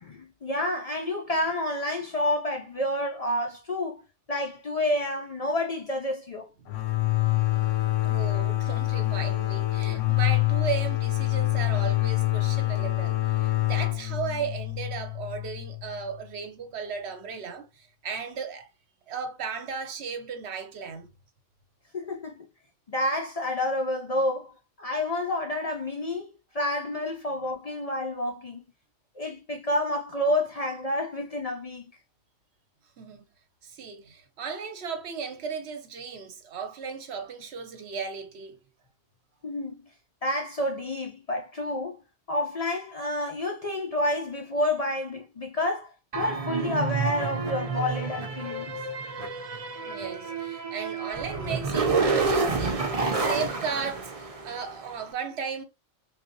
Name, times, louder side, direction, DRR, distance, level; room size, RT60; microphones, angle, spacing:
voice 1, 0.0-4.0 4.3-6.5 21.9-22.4 22.9-24.5 24.8-28.6 29.2-31.8 39.4-39.8 40.2-42.0 42.3-48.7, left 1 dB, 60° left, 0.4 m, -29 dB
sound 1, 6.7-16.2, left 19 dB, 80° left, 0.9 m, -26 dB
voice 2, 7.5-18.7 19.1-21.1 33.0-33.2 33.6-38.6 49.8-55.6, right 6 dB, 65° right, 0.9 m, -36 dB
sound 2, 46.1-54.8, right 4 dB, 40° right, 0.5 m, -29 dB
3.7 x 2.7 x 2.6 m
omnidirectional pair, 1.3 m